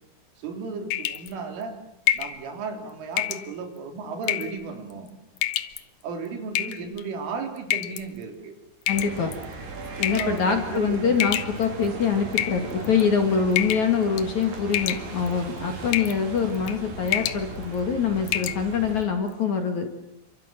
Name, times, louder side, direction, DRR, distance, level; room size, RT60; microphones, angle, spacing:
voice 1, 0.4-1.8 2.1-5.1 6.0-8.6 10.0-11.1, right 4 dB, 90° right, 5 dB, 6.0 m, -34 dB
sound 1, 0.9-1.3 2.1-2.4 3.2-3.5 4.2-4.6 5.4-5.8 6.6-7.0 7.7-8.0 8.9-9.4 10.0-10.4 11.2-11.9 12.3-13.0 13.6-13.9 14.2-14.4 14.7-15.3 15.9-16.2 16.5-16.8 17.1-17.4 17.8-17.9 18.3-18.6, left 12 dB, 85° left, 1.8 m, -27 dB
voice 2, 8.9-9.3 10.0-19.9, left 6 dB, 45° left, 5 dB, 2.9 m, -24 dB
sound 2, 8.9-19.0, right 3 dB, 45° right, 5.1 m, -38 dB
29.0 x 25.0 x 7.6 m, 0.80 s
omnidirectional pair, 5.5 m